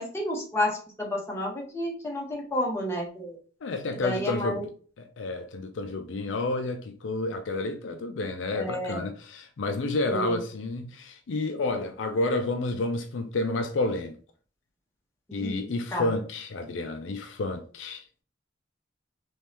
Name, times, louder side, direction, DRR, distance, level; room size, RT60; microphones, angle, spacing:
voice 1, 0.0-3.4 4.0-4.6 8.5-9.0 10.1-10.4 15.3-15.6 15.9-16.1, left 1 dB, 15° left, 1.1 m, -30 dB
voice 2, 3.6-4.7 5.0-14.2 15.3-18.0, left 2 dB, 65° left, 0.4 m, -30 dB
3.5 x 3.1 x 2.9 m
head